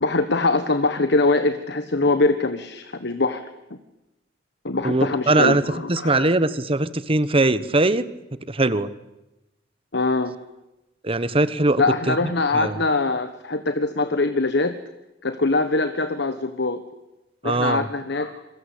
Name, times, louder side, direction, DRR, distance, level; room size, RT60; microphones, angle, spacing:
voice 1, 0.0-3.4 3.7-3.8 4.6-6.4 9.9-10.3 11.8-14.7 15.2-16.8 17.4-18.4, left 3 dB, 65° left, 9 dB, 1.3 m, -23 dB
voice 2, 4.8-5.6 5.9-8.1 8.5-8.9 11.0-12.2 12.5-12.8 17.4-17.8, right 2 dB, 30° right, 15 dB, 1.2 m, -21 dB
26.5 x 23.0 x 8.5 m, 0.99 s
head